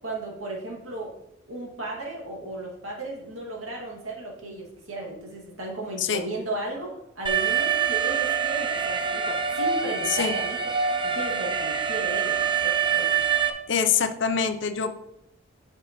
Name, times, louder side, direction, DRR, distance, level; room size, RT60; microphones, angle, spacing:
voice 1, 0.0-1.1 1.5-10.6 11.0-13.1, right 1 dB, 90° right, -2 dB, 2.3 m, -35 dB
Alarm, 7.3-13.5, right 7 dB, 25° right, 0.6 m, -25 dB
voice 2, 13.7-14.9, left 7 dB, 60° left, 9 dB, 0.6 m, -24 dB
8.7 x 6.2 x 3.1 m, 0.84 s
head